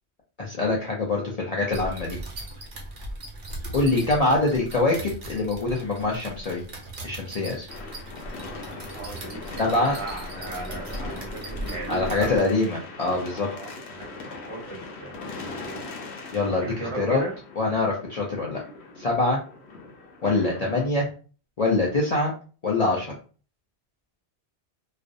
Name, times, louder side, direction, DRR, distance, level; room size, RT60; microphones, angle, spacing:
voice 1, 0.4-2.2 3.7-6.6 7.0-7.7 9.6-10.0 11.9-13.5 16.3-17.2 17.6-18.6 19.0-19.4 20.2-21.1 21.6-22.3 22.6-23.1, left 2 dB, 50° left, -3 dB, 0.5 m, -24 dB
sound 1, 1.7-12.4, right 1 dB, 55° right, 0.8 m, -38 dB
sound 2, 7.7-20.9, left 3 dB, 80° left, 0.9 m, -40 dB
voice 2, 8.9-12.3 13.5-14.0 14.3-15.8 16.5-17.3, right 3 dB, 25° right, -4 dB, 1.0 m, -37 dB
2.4 x 2.0 x 2.5 m, 0.37 s
omnidirectional pair, 1.1 m